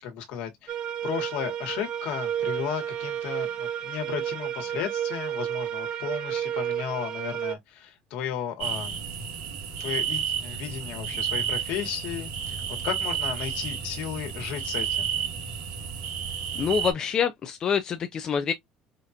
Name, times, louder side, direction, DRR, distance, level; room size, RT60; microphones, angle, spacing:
voice 1, 0.0-9.2 9.8-15.1, left 9 dB, 65° left, 1.4 m, -34 dB
sound 1, 0.7-7.6, right 10 dB, 35° right, 0.5 m, -31 dB
sound 2, 8.6-16.9, right 8 dB, 75° right, 2.0 m, -31 dB
voice 2, 16.6-18.5, left 7 dB, 30° left, 0.5 m, -26 dB
5.0 x 2.4 x 2.8 m
cardioid pair, 165°, 2 cm